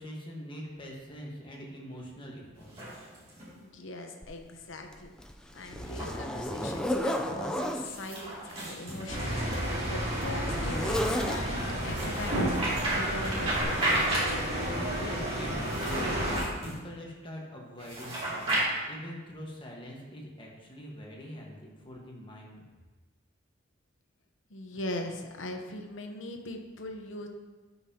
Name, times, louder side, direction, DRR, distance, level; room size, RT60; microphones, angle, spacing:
voice 1, 0.0-2.7 14.9-22.6, equal, 25° left, -2 dB, 1.3 m, -43 dB
sound 1, 2.5-3.5 5.8-6.1 7.8-9.7 11.8-14.7 15.6-16.8 17.8-18.6, right 1 dB, 30° right, 2.5 m, -33 dB
voice 2, 3.5-5.1 5.5-14.0 24.5-27.3, left 1 dB, 75° left, 4 dB, 0.9 m, -40 dB
Zipper (clothing), 4.2-4.3 4.9-7.9 8.8-11.8 12.8-13.0 13.6-13.7, equal, 5° left, 0.4 m, -34 dB
sound 2, 9.1-16.4, equal, 50° right, 2.7 m, -31 dB
11.5 x 5.6 x 2.8 m, 1.3 s
head